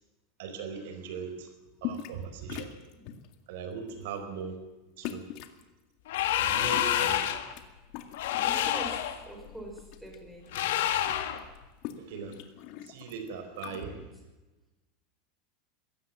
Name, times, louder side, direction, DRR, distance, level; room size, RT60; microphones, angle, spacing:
voice 1, 0.4-1.5 1.8-2.7 3.5-4.5 5.0-5.2 6.4-7.2 12.1-12.4 12.8-13.9, right 6 dB, 70° right, 8 dB, 4.3 m, -39 dB
sound 1, 1.8-2.2 2.5-3.3 3.9-4.1 5.0-5.6 6.5-7.6 7.9-9.0 9.4-10.2 10.4-10.5 10.8-13.8, left 11 dB, 50° left, 2.0 m, -41 dB
sound 2, 6.1-7.5 8.1-9.2 10.5-11.4, left 11 dB, 80° left, 2.2 m, -28 dB
voice 2, 8.4-10.8 13.6-14.0, right 1 dB, 5° right, 1 dB, 5.4 m, -44 dB
22.5 x 17.0 x 7.4 m, 1.1 s
supercardioid pair, 155°, 0 cm